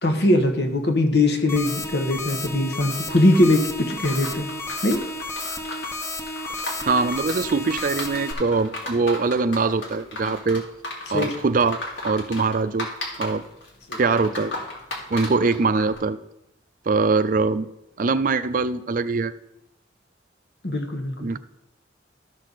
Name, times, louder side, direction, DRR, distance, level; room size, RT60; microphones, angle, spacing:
voice 1, 0.0-4.5 4.8-5.0 11.1-11.3 13.9-14.0 20.6-21.1, left 1 dB, 65° left, 6 dB, 1.3 m, -21 dB
sound 1, 1.5-8.3, left 2 dB, 15° left, 0.9 m, -32 dB
sound 2, 3.1-16.0, left 2 dB, 80° left, 2.3 m, -35 dB
voice 2, 6.8-10.7 11.1-11.8 12.0-12.9 13.2-13.4 14.0-14.5 15.1-16.2 16.9-17.7 18.0-19.3 21.2-21.4, right 4 dB, 50° right, 14 dB, 0.5 m, -22 dB
13.0 x 6.5 x 4.1 m, 0.87 s
head